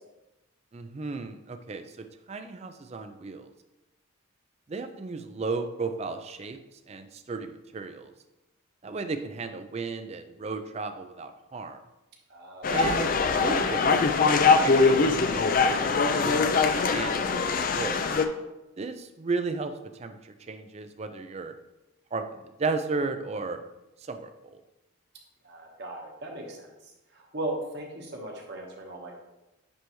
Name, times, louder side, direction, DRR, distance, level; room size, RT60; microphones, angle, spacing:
voice 1, 0.7-3.5 4.7-8.1 8.8-11.8 12.7-13.1 13.4-14.1 14.6-16.4 16.9-17.5 17.7-18.1 18.8-21.5 22.1-23.6 24.0-24.6, right 4 dB, 30° right, 8 dB, 0.4 m, -34 dB
voice 2, 12.3-13.0 25.4-29.1, right 1 dB, 50° right, 0 dB, 1.2 m, -38 dB
sound 1, 12.6-18.3, left 4 dB, 40° left, 0.4 m, -22 dB
9.5 x 3.4 x 3.0 m, 0.98 s
head